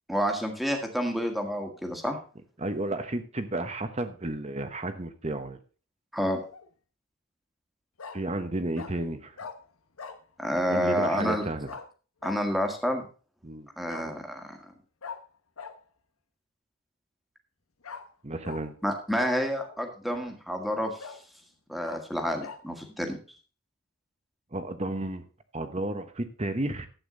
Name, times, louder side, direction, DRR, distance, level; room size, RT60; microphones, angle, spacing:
voice 1, 0.1-2.2 6.1-6.4 10.4-11.5 12.2-13.0 13.8-14.6 18.8-21.1 21.7-23.2, equal, ahead, 3 dB, 1.8 m, -29 dB
voice 2, 2.6-5.6 8.1-9.3 10.7-11.7 13.4-13.7 18.2-18.7 24.5-25.2 25.5-26.9, right 2 dB, 30° right, 9 dB, 1.1 m, -32 dB
Bark, 6.3-6.7 8.0-8.2 8.8-8.9 9.4-9.6 10.0-10.2 11.7-11.9 12.2-12.4 13.9-14.1 15.0-15.2 15.6-15.7 17.8-18.0 18.4-18.6 19.2-19.8 20.3-20.4 21.0-21.2 21.8-22.0 22.4-22.6, left 5 dB, 85° left, 1.2 m, -41 dB
12.0 x 8.6 x 3.9 m, 0.36 s
head